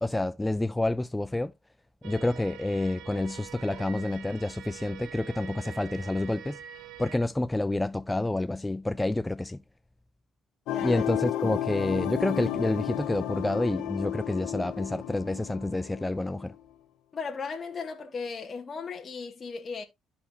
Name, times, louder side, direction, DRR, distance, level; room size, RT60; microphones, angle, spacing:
voice 1, 0.0-1.5 2.0-6.6 7.0-9.6 10.8-16.5, left 2 dB, 10° left, 0.3 m, -28 dB
sound 1, 2.0-7.2, right 10 dB, 80° right, 0.8 m, -45 dB
sound 2, 10.7-16.5, left 12 dB, 80° left, 0.9 m, -33 dB
voice 2, 10.7-11.3 17.1-19.8, left 5 dB, 40° left, 1.1 m, -37 dB
13.0 x 4.3 x 2.6 m
cardioid pair, 85°, 0 cm